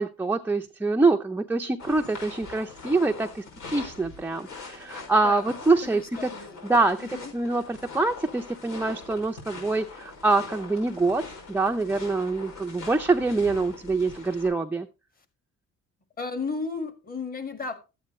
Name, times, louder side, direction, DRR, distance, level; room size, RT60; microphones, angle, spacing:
voice 1, 0.0-6.3 6.6-14.9, right 3 dB, 5° right, 3 dB, 0.5 m, -25 dB
sound 1, 1.8-14.5, left 4 dB, 85° left, 5.7 m, -42 dB
voice 2, 5.8-6.6 7.0-7.3 16.2-17.7, left 4 dB, 30° left, 8 dB, 1.8 m, -34 dB
13.0 x 8.7 x 3.1 m, 0.28 s
cardioid pair, 145°, 31 cm